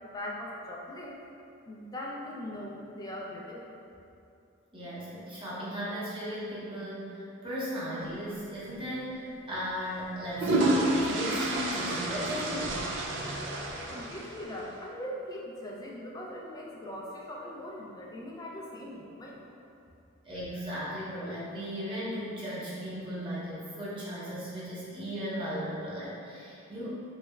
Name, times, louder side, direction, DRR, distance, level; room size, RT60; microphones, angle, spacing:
voice 1, 0.1-1.2 1.7-3.7 13.9-19.4, left 1 dB, 20° left, -3 dB, 0.3 m, -40 dB
voice 2, 4.7-12.8 20.2-26.9, equal, 25° right, -9 dB, 0.8 m, -36 dB
sound 1, 8.7-8.9 10.0-14.6, right 1 dB, 60° right, 0.4 m, -30 dB
3.2 x 3.1 x 2.3 m, 2.6 s
head